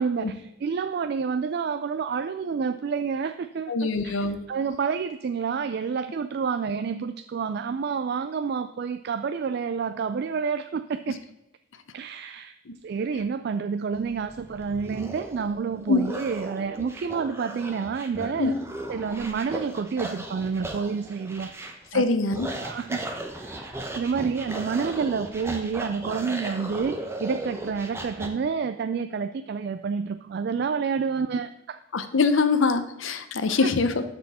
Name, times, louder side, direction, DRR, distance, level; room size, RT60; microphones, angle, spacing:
voice 1, 0.0-11.2 11.9-12.5 12.8-18.5 18.9-22.1 22.6-23.0 23.3-31.8 33.5-33.7, right 5 dB, 50° right, 10 dB, 0.3 m, -29 dB
voice 2, 3.7-4.4 15.9-16.0 18.4-18.5 21.9-22.5 31.9-34.0, left 4 dB, 70° left, 10 dB, 0.7 m, -23 dB
sound 1, 13.9-28.3, right 1 dB, 10° right, 0.8 m, -37 dB
12.5 x 4.4 x 4.2 m, 0.90 s
head